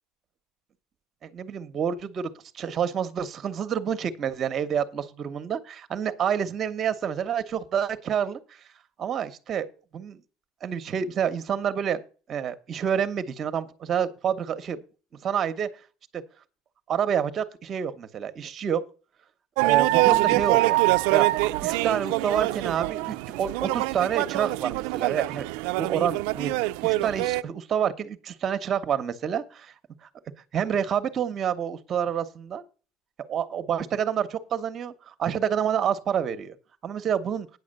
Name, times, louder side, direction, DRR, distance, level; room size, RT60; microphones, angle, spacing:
voice 1, 1.2-2.3 2.5-8.6 9.0-9.7 9.9-10.2 10.6-12.0 12.3-14.8 15.2-15.7 16.1-16.2 16.9-18.8 19.6-20.8 21.1-21.3 21.6-25.5 25.7-26.5 26.8-29.7 30.0-30.1 30.5-32.6 33.3-36.5 36.8-37.5, right 8 dB, 30° right, 0.9 m, -28 dB
sound 1, 19.6-27.4, right 20 dB, 85° right, 0.4 m, -24 dB
9.5 x 6.4 x 6.5 m
cardioid pair, 160°, 0 cm